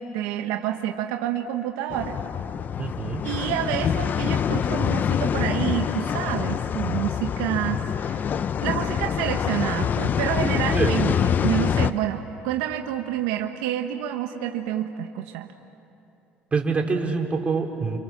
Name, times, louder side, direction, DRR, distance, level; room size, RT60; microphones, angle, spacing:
voice 1, 0.0-2.2 3.2-15.5, right 11 dB, 80° right, 4 dB, 1.2 m, -28 dB
sound 1, 1.9-11.9, left 8 dB, 45° left, 0.7 m, -25 dB
voice 2, 2.8-3.2 10.7-11.0 16.5-18.0, right 4 dB, 30° right, 1 dB, 4.0 m, -25 dB
29.5 x 28.0 x 7.3 m, 2.8 s
supercardioid pair, 80°, 4 cm